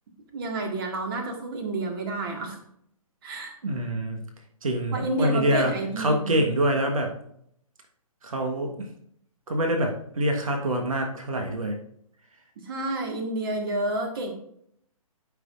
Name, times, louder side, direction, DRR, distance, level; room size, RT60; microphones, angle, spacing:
voice 1, 0.3-2.6 3.2-3.6 4.9-6.3 12.7-14.3, right 2 dB, 40° right, 4 dB, 1.7 m, -29 dB
voice 2, 3.6-4.2 4.6-7.1 8.2-8.9 9.5-11.8, right 1 dB, 65° right, 3 dB, 1.4 m, -26 dB
12.5 x 5.9 x 2.5 m, 0.69 s
figure-of-eight pair, 130°, 19 cm